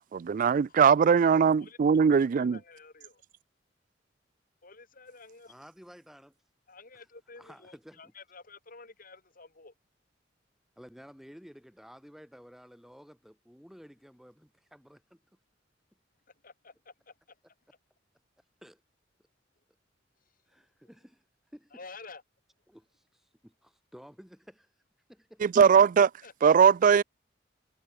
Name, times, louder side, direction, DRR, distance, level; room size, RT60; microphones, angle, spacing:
voice 1, 0.0-2.6 25.4-26.1 26.4-27.0, right 6 dB, 45° right, 0.3 m, -21 dB
voice 2, 1.2-1.8 2.1-3.2 4.6-5.5 6.7-9.7 16.4-17.4 21.7-22.2 26.2-26.5, left 4 dB, 50° left, 3.3 m, -51 dB
voice 3, 5.5-6.3 6.9-7.0 7.4-8.1 10.8-15.2 18.6-18.8 20.5-21.2 21.5-21.8 22.7-24.7 25.1-25.5, equal, ahead, 5.7 m, -53 dB
head